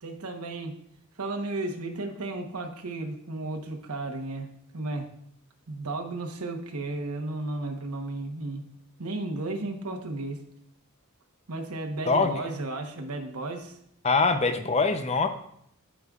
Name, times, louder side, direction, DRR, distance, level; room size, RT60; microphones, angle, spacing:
voice 1, 0.0-0.8 1.2-4.5 4.7-5.1 5.7-8.7 9.0-10.5 11.5-13.8, right 2 dB, 85° right, 3 dB, 1.1 m, -34 dB
voice 2, 12.1-12.4 14.0-15.3, left 4 dB, 30° left, 7 dB, 0.6 m, -23 dB
13.5 x 5.2 x 2.4 m, 0.71 s
head